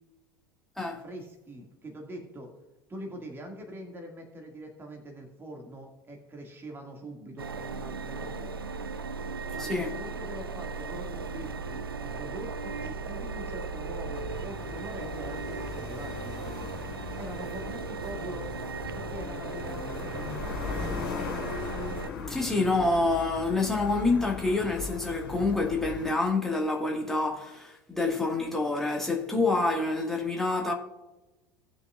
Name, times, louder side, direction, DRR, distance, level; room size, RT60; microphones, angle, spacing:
voice 1, 1.0-2.5 2.9-8.5 9.5-16.7 17.1-18.5 18.9-20.4, right 1 dB, 20° right, 2.1 m, -43 dB
sound 1, 7.4-22.1, right 4 dB, 80° right, 0.4 m, -37 dB
voice 2, 9.6-9.9 22.3-30.7, left 3 dB, 5° left, 1.9 m, -27 dB
sound 2, 14.1-26.1, left 5 dB, 70° left, 2.2 m, -38 dB
19.0 x 6.7 x 2.4 m
figure-of-eight pair, 80°, 12 cm